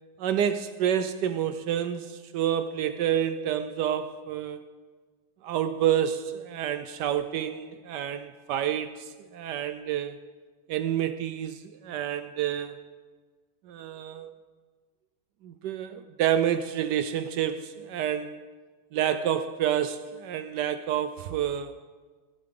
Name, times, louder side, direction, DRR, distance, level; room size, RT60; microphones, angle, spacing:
voice 1, 0.2-4.6 5.4-10.2 10.7-12.8 13.7-14.3 15.4-18.4 18.9-21.7, right 10 dB, 75° right, 11 dB, 1.0 m, -28 dB
15.5 x 11.5 x 3.7 m, 1.4 s
omnidirectional pair, 2.2 m